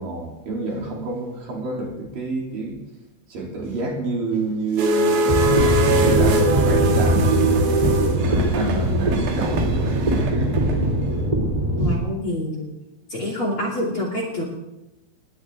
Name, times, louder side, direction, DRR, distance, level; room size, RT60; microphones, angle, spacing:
voice 1, 0.0-2.8 3.3-7.3 8.1-10.8, right 3 dB, 55° right, -2 dB, 4.7 m, -29 dB
sound 1, 4.8-11.1, right 2 dB, 75° right, 4.3 m, -22 dB
sound 2, 5.3-11.9, equal, 15° right, 1.8 m, -21 dB
voice 2, 11.8-12.7 13.1-14.4, left 1 dB, 35° left, -1 dB, 3.2 m, -27 dB
20.0 x 17.5 x 3.7 m, 0.94 s
omnidirectional pair, 5.0 m